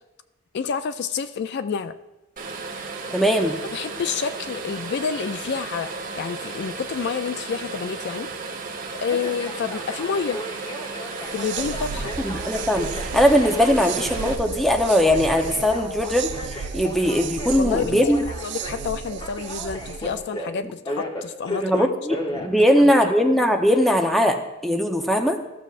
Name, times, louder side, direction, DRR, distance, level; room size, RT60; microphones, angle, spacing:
voice 1, 0.5-1.9 3.7-5.9 6.1-8.3 9.0-10.4 11.3-12.1 17.6-21.9 22.3-22.9, left 6 dB, 55° left, 12 dB, 0.3 m, -29 dB
sound 1, 2.4-14.4, right 4 dB, 40° right, 1.1 m, -34 dB
voice 2, 3.1-3.6 12.2-18.2 21.6-25.4, equal, ahead, 4 dB, 0.7 m, -20 dB
Telephone, 5.7-6.3 9.1-23.3 23.7-24.3, left 1 dB, 25° left, 0.9 m, -35 dB
sound 2, 11.1-20.2, right 5 dB, 60° right, 0.4 m, -34 dB
14.0 x 6.9 x 2.5 m, 1.0 s
head